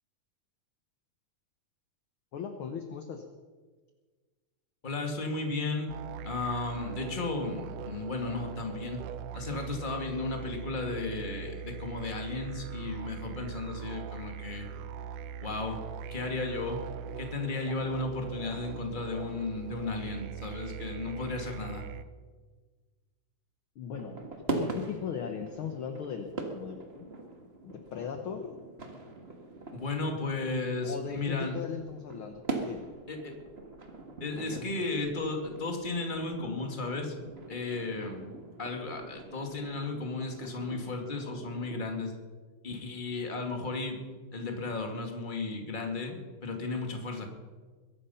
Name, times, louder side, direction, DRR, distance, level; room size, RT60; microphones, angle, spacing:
voice 1, 2.3-3.2 23.8-24.2 24.5-27.1 27.6-28.5 30.4-30.5 30.8-32.8 34.4-34.7, left 7 dB, 65° left, 6 dB, 1.4 m, -38 dB
voice 2, 4.8-5.9 6.2-9.0 9.3-14.7 15.4-15.8 16.1-16.8 17.2-21.8 29.7-31.6 33.1-33.3 34.2-37.1 37.5-38.2 38.6-42.1 42.6-44.0 44.3-47.3, left 3 dB, 20° left, 3 dB, 1.8 m, -34 dB
sound 1, 5.9-22.0, right 7 dB, 85° right, 2.3 m, -41 dB
sound 2, 23.9-41.8, right 2 dB, 30° right, 1.3 m, -42 dB
22.0 x 11.0 x 5.7 m, 1.4 s
omnidirectional pair, 3.6 m